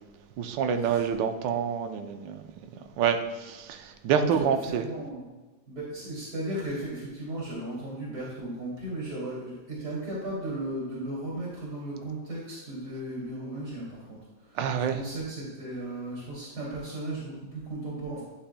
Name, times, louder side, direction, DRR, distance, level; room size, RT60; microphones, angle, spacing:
voice 1, 0.4-2.4 2.8-4.9 14.5-15.0, right 7 dB, 75° right, 7 dB, 1.3 m, -27 dB
voice 2, 4.1-5.3 5.7-14.6 14.9-18.2, right 1 dB, 55° right, -7 dB, 2.9 m, -36 dB
11.5 x 6.8 x 2.2 m, 1.2 s
omnidirectional pair, 2.1 m